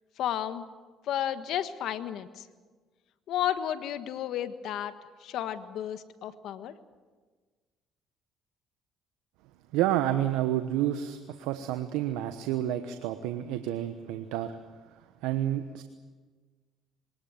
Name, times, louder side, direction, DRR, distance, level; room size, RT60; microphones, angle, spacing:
voice 1, 0.2-0.7 1.1-2.5 3.3-4.9 5.2-6.7, left 10 dB, 70° left, 11 dB, 1.5 m, -32 dB
voice 2, 9.7-14.5 15.2-15.8, right 12 dB, 85° right, 9 dB, 1.1 m, -29 dB
22.5 x 18.5 x 9.1 m, 1.4 s
supercardioid pair, 70°, 0 cm